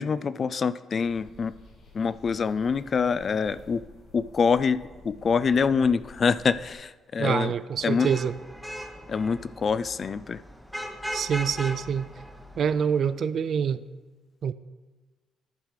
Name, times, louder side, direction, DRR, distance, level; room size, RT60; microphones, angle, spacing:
voice 1, 0.0-1.5 1.9-3.8 4.1-7.5 7.8-8.1 9.1-10.4, left 5 dB, 45° left, 16 dB, 0.3 m, -25 dB
sound 1, 1.0-6.8, left 1 dB, 65° left, 2.8 m, -51 dB
voice 2, 7.2-8.3 11.1-12.1 12.6-13.8 14.4-14.5, right 7 dB, 60° right, 15 dB, 0.3 m, -26 dB
Vehicle horn car horn honking / Traffic noise roadway noise, 7.8-13.0, equal, ahead, 0.9 m, -39 dB
11.0 x 4.9 x 4.8 m, 1.3 s
cardioid pair, 90°, 0 cm